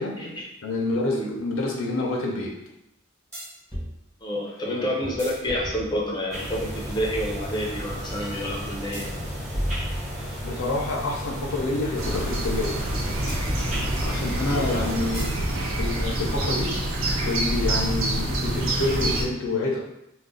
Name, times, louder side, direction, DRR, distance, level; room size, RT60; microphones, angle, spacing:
voice 1, 0.0-0.4 1.2-1.3 4.2-9.1 14.5-14.9, equal, 20° left, -3 dB, 0.6 m, -29 dB
voice 2, 0.6-2.5 4.7-4.9 10.4-12.8 14.0-15.3 15.8-16.7 17.2-19.8, left 2 dB, 70° left, -1 dB, 0.6 m, -28 dB
sound 1, 3.3-3.9 5.0-6.3 8.9-10.6 13.3-14.3 15.1-15.5 15.8-17.1, equal, 10° right, 1.2 m, -34 dB
sound 2, 6.3-15.1, equal, 35° right, 0.9 m, -34 dB
sound 3, 12.0-19.2, right 1 dB, 75° right, 0.6 m, -26 dB
2.4 x 2.2 x 3.7 m, 0.84 s
head